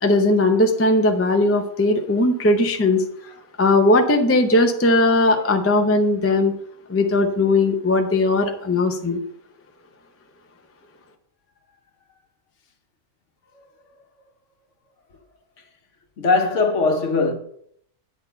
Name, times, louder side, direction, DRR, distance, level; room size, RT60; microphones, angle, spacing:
voice 1, 0.0-3.0 3.6-6.5 6.9-9.2, left 2 dB, 20° left, 0.4 m, -18 dB
voice 2, 16.2-17.3, left 3 dB, 55° left, 1.3 m, -21 dB
8.6 x 4.1 x 6.7 m
omnidirectional pair, 1.5 m